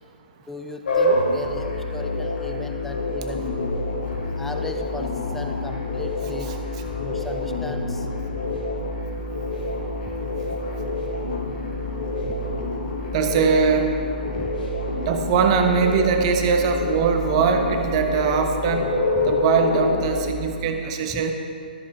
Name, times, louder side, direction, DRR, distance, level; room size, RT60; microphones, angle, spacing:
voice 1, 0.5-3.4 4.1-6.5 6.9-8.1 8.3-8.7 10.1-10.2 12.2-12.3 14.4-14.5 21.1-21.2, left 1 dB, 5° left, 5 dB, 0.4 m, -37 dB
sound 1, 0.8-20.5, left 2 dB, 60° left, 1.7 m, -27 dB
voice 2, 13.1-13.9 15.1-18.9 19.2-21.3, right 5 dB, 35° right, 5 dB, 1.0 m, -21 dB
13.0 x 7.3 x 4.4 m, 2.4 s
figure-of-eight pair, 125°, 5 cm